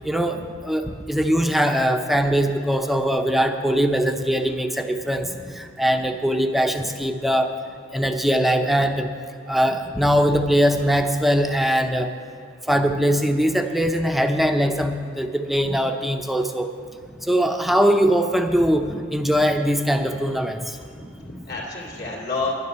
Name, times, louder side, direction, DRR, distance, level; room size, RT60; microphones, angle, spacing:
voice 1, 0.0-5.3 5.6-7.5 7.9-9.1 9.5-12.1 12.7-16.7 17.3-20.8, equal, ahead, 5 dB, 0.6 m, -21 dB
voice 2, 18.8-19.2 20.1-20.2 20.9-22.5, left 3 dB, 60° left, -2 dB, 2.7 m, -32 dB
11.0 x 10.5 x 6.8 m, 2.3 s
head